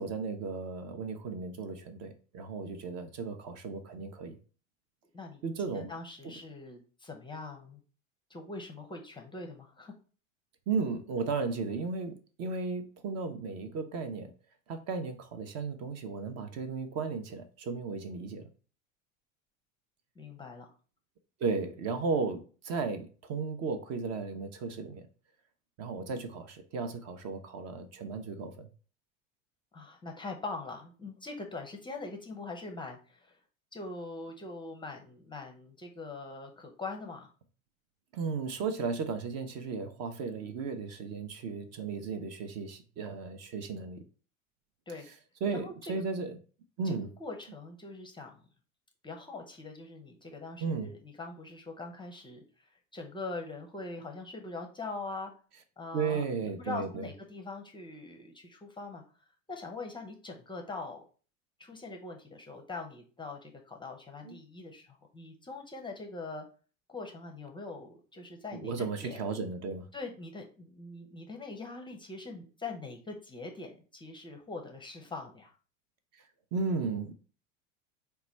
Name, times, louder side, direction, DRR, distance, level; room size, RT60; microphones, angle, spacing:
voice 1, 0.0-4.4 5.4-5.9 10.7-14.3 14.7-18.4 21.4-25.0 25.8-28.7 38.1-44.0 45.4-46.4 46.8-47.1 50.6-50.9 55.9-57.1 64.2-64.4 68.5-69.9 76.1-76.2 76.5-77.1, right 4 dB, 40° right, 8 dB, 0.6 m, -35 dB
voice 2, 5.1-7.8 8.3-9.9 20.2-20.7 29.7-33.4 33.7-37.3 44.9-45.1 45.5-46.0 46.8-48.4 49.0-55.3 55.8-56.2 56.6-59.0 59.5-61.0 61.6-66.4 66.9-69.2 69.9-75.5, left 3 dB, 10° left, 3 dB, 0.6 m, -42 dB
3.9 x 2.2 x 4.3 m, 0.38 s
figure-of-eight pair, 75°, 40 cm